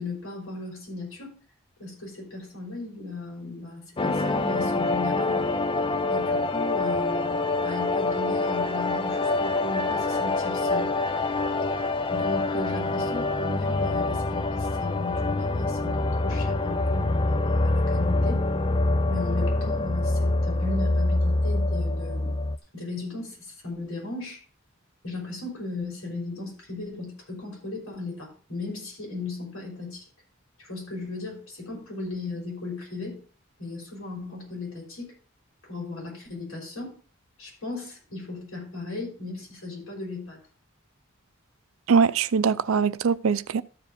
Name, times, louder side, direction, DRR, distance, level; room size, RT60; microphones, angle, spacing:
voice 1, 0.0-1.3 1.8-5.5 6.1-10.9 12.1-18.4 19.1-22.4 22.7-24.4 25.0-30.0 30.6-33.2 33.6-35.1 35.6-37.0 37.4-40.4, left 3 dB, 90° left, 5.7 m, -36 dB
sound 1, 4.0-22.6, left 2 dB, 25° left, 0.5 m, -25 dB
voice 2, 41.9-43.6, right 5 dB, 75° right, 0.5 m, -22 dB
13.0 x 4.9 x 5.1 m
head